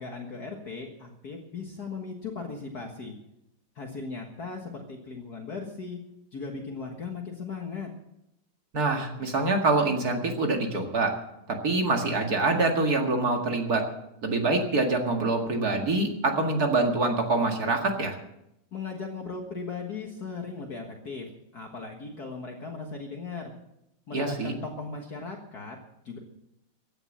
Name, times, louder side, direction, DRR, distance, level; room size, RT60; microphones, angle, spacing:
voice 1, 0.0-3.1 3.8-6.0 6.3-7.9 18.7-21.3 21.5-23.5 24.1-25.8 26.1-26.2, left 4 dB, 50° left, 1 dB, 2.0 m, -37 dB
voice 2, 8.7-11.1 11.5-13.8 14.2-18.2 24.1-24.5, right 3 dB, 45° right, 3 dB, 2.5 m, -25 dB
15.5 x 9.9 x 7.4 m, 0.82 s
omnidirectional pair, 2.3 m